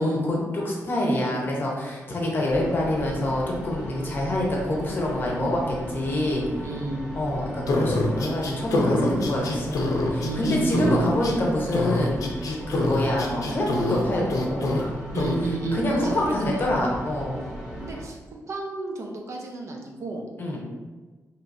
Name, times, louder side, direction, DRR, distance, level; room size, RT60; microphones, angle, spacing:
voice 1, 0.0-6.4 7.1-12.2 12.7-14.9 15.7-17.4 20.4-20.6, left 1 dB, 35° left, -2 dB, 0.8 m, -26 dB
sound 1, 2.5-18.0, right 1 dB, 10° right, 0.8 m, -37 dB
voice 2, 6.6-7.1 10.2-11.0 15.1-16.6 17.8-18.2 18.5-20.3, right 2 dB, 55° right, 0 dB, 0.5 m, -30 dB
sound 2, 7.7-11.4 11.7-14.0 14.3-14.8 15.2-15.4, left 2 dB, 70° left, 0.5 m, -25 dB
4.5 x 2.9 x 2.6 m, 1.3 s
wide cardioid pair, 170°, 6 cm